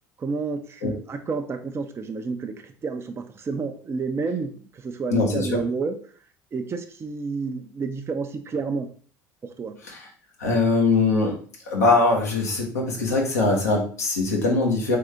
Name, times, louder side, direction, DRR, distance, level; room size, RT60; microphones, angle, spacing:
voice 1, 0.2-6.1 6.5-8.9 9.4-9.8, right 4 dB, 30° right, 5 dB, 0.6 m, -30 dB
voice 2, 5.1-5.6 9.9-10.0 10.4-11.4 11.7-15.0, left 3 dB, 85° left, -2 dB, 1.1 m, -22 dB
3.7 x 3.5 x 3.4 m, 0.42 s
figure-of-eight pair, 60°, 8 cm